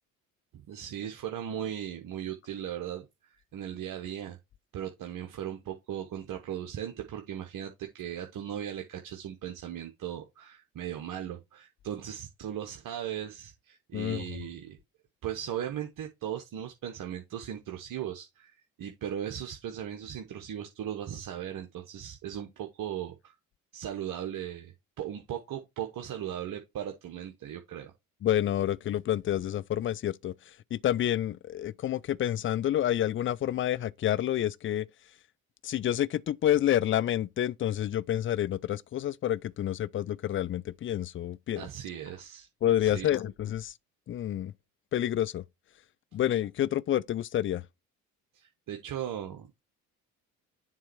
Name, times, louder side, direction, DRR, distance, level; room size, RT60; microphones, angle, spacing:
voice 1, 0.5-4.4 4.7-14.8 15.2-23.3 23.7-27.9 41.6-42.5 42.8-43.2 48.3-49.6, right 10 dB, 50° right, 1.0 m, -38 dB
voice 2, 13.9-14.2 28.2-30.3 30.7-34.9 35.6-41.7 42.6-43.7 44.1-44.5 44.9-45.4 46.1-47.6, left 11 dB, 30° left, 0.4 m, -28 dB
7.3 x 3.1 x 4.5 m
hypercardioid pair, 55°, 41 cm